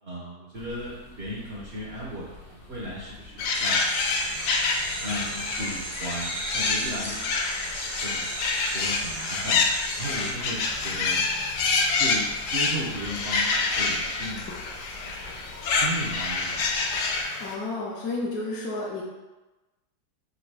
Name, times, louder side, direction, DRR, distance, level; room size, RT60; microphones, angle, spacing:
voice 1, 0.0-3.8 4.2-4.7 5.0-8.3 8.7-9.6 10.0-11.2 11.6-11.7 12.0-14.5 15.0-15.4 15.7-16.9, equal, 55° right, -5 dB, 0.7 m, -36 dB
sound 1, 0.5-17.2, left 2 dB, 40° left, 0.7 m, -47 dB
sound 2, 3.4-17.5, left 4 dB, 90° left, 0.7 m, -27 dB
sound 3, 3.5-10.3, right 3 dB, 85° right, 1.4 m, -37 dB
voice 2, 17.4-19.0, left 2 dB, 65° left, -4 dB, 1.0 m, -31 dB
4.0 x 2.6 x 4.6 m, 1.1 s
omnidirectional pair, 1.9 m